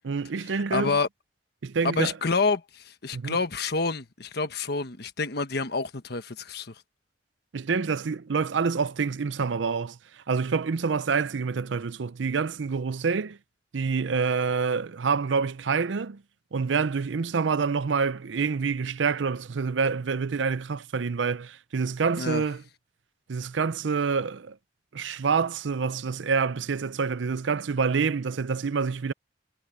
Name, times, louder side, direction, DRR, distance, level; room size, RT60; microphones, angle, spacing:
voice 1, 0.0-1.0 1.6-2.1 3.1-3.4 7.5-13.4 13.7-16.2 16.5-22.6 23.3-24.6 24.9-29.1, right 5 dB, 85° right, 0.6 m, -27 dB
voice 2, 0.7-1.1 1.8-6.7 22.2-22.4, left 4 dB, 60° left, 1.3 m, -28 dB
head